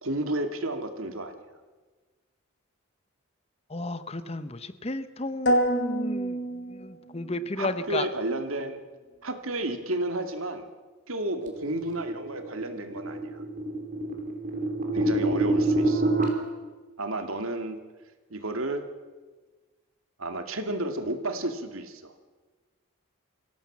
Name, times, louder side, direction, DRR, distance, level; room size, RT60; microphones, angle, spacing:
voice 1, 0.0-1.4 7.2-8.8 9.2-10.7 11.1-13.4 14.9-16.0 17.0-17.8 18.3-18.8 20.2-22.1, right 1 dB, 75° right, 7 dB, 2.2 m, -32 dB
voice 2, 3.7-8.1, left 2 dB, 30° left, 12 dB, 0.8 m, -33 dB
sound 1, 5.5-7.4, right 1 dB, 55° left, 3.5 m, -27 dB
sound 2, 11.6-16.3, right 2 dB, 40° right, 3.1 m, -27 dB
25.0 x 17.0 x 7.4 m, 1.3 s
head